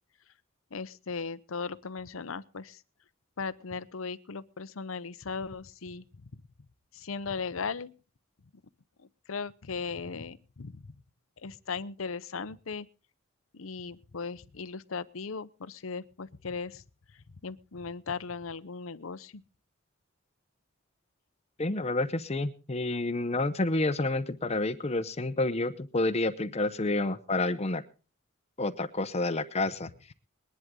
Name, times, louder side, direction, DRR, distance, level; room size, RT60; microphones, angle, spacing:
voice 1, 0.7-2.8 3.4-6.4 6.9-7.9 9.0-10.9 11.4-12.9 13.5-16.8 17.1-19.4, left 5 dB, 75° left, 15 dB, 0.8 m, -38 dB
voice 2, 21.6-27.8 28.6-30.1, left 2 dB, 30° left, 11 dB, 0.8 m, -29 dB
21.0 x 11.0 x 3.7 m, 0.35 s
head